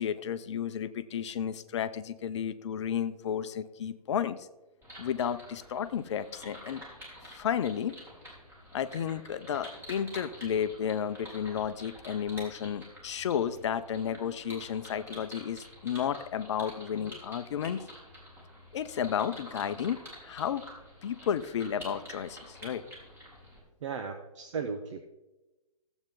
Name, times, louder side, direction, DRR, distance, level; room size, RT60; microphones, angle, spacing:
voice 1, 0.0-4.5 5.0-6.8 7.2-7.9 8.7-17.8 18.7-20.6 21.0-22.8, left 8 dB, 50° left, 13 dB, 0.7 m, -32 dB
sound 1, 4.8-23.6, equal, 10° right, 3.5 m, -48 dB
voice 2, 23.8-25.0, right 5 dB, 50° right, 6 dB, 1.0 m, -36 dB
15.0 x 8.1 x 3.7 m, 1.0 s
figure-of-eight pair, 125°, 19 cm